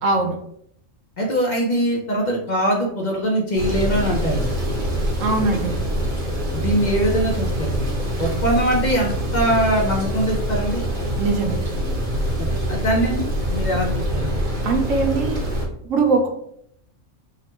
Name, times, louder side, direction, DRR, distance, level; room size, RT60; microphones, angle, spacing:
voice 1, 0.0-0.4 5.2-5.8 11.2-11.6 14.6-15.4 15.8-16.3, right 3 dB, 85° right, 4 dB, 1.1 m, -21 dB
voice 2, 1.2-4.5 6.5-7.9 8.2-10.8 12.4-14.4, right 1 dB, 45° left, -1 dB, 0.6 m, -22 dB
sound 1, 3.6-15.7, equal, 40° right, 1.1 m, -24 dB
3.7 x 2.1 x 4.3 m, 0.69 s
omnidirectional pair, 1.3 m